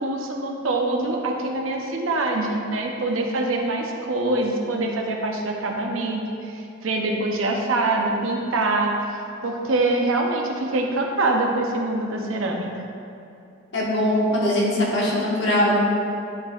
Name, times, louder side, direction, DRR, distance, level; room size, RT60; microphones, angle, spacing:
voice 1, 0.0-8.9 9.4-12.7, right 2 dB, 85° right, 1 dB, 0.8 m, -24 dB
voice 2, 13.7-15.8, left 1 dB, 65° left, -5 dB, 1.4 m, -21 dB
10.5 x 4.2 x 2.4 m, 2.6 s
head